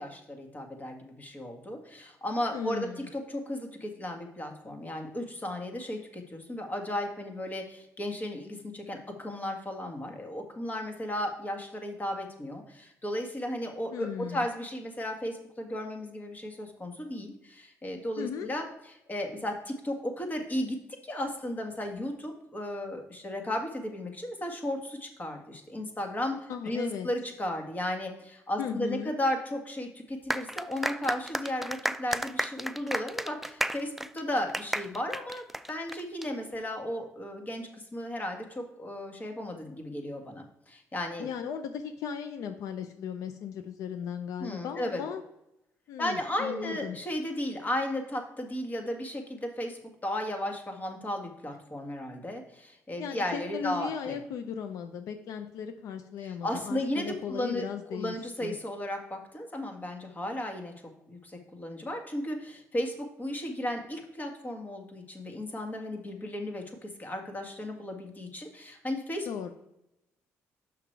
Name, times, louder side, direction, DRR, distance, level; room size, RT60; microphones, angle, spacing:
voice 1, 0.0-18.7 19.1-20.8 21.0-41.3 44.4-45.0 46.0-54.2 56.2-57.7 57.9-60.7 61.1-69.3, left 1 dB, 30° left, 3 dB, 1.7 m, -35 dB
voice 2, 2.5-3.1 13.9-14.5 18.2-18.5 26.5-27.1 28.6-29.1 41.2-45.2 45.9-47.0 53.0-58.2 58.4-58.6 69.3-69.5, left 7 dB, 75° left, 8 dB, 0.6 m, -36 dB
sound 1, 30.3-36.3, right 1 dB, 5° right, 0.4 m, -33 dB
6.1 x 5.9 x 4.6 m, 0.85 s
supercardioid pair, 70°, 6 cm